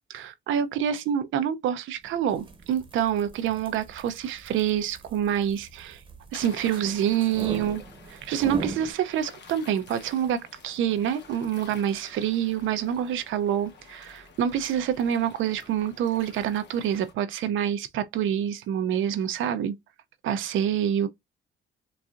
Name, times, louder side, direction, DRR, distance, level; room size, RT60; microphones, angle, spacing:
voice 1, 0.1-6.0 6.3-19.8 20.2-21.1, right 9 dB, 80° right, 0.5 m, -27 dB
sound 1, 2.2-8.9, right 3 dB, 25° right, 0.9 m, -41 dB
sound 2, 6.3-17.1, left 4 dB, 65° left, 1.0 m, -50 dB
4.0 x 2.3 x 2.4 m
cardioid pair, 90°, 20 cm